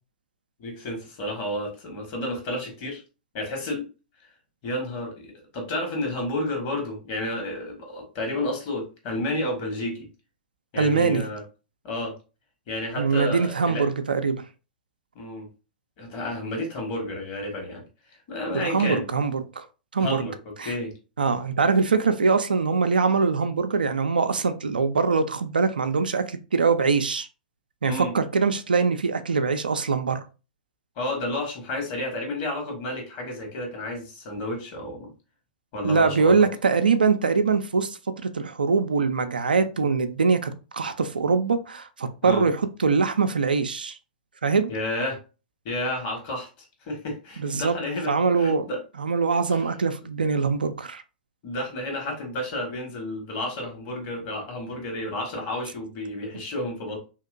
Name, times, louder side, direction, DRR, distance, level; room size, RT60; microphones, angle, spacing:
voice 1, 0.6-3.0 3.3-3.9 4.6-10.1 10.7-11.4 11.8-12.2 12.7-13.9 15.1-15.5 16.0-17.8 18.3-19.1 20.0-20.9 27.8-28.1 31.0-35.1 35.7-36.4 42.2-42.4 44.7-45.2 45.6-48.8 49.5-49.6 51.4-57.0, left 1 dB, 40° left, 1.3 m, -31 dB
voice 2, 10.8-11.2 13.0-14.4 18.5-19.7 19.9-20.3 20.6-20.7 21.2-27.3 27.8-30.2 35.8-44.0 44.4-44.7 47.4-47.8 48.1-48.7 49.0-51.0, right 5 dB, 75° right, 0.4 m, -23 dB
2.8 x 2.8 x 2.4 m
figure-of-eight pair, 105°, 5 cm